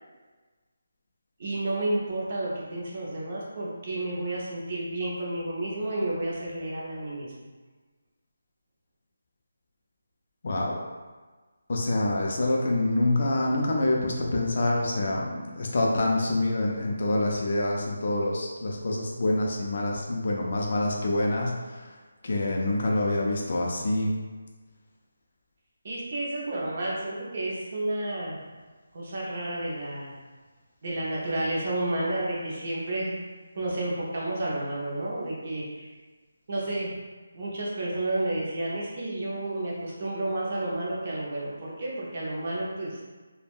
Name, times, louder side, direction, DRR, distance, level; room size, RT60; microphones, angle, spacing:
voice 1, 1.4-7.3 25.8-28.4 28.9-30.1 30.8-33.2 33.6-35.9 36.5-36.9 37.3-43.0, right 1 dB, 30° right, -5 dB, 0.5 m, -31 dB
voice 2, 10.4-10.8 11.7-21.9 22.2-24.2, left 2 dB, 40° left, -2 dB, 0.3 m, -26 dB
3.4 x 2.0 x 2.3 m, 1.3 s
hypercardioid pair, 175°, 0 cm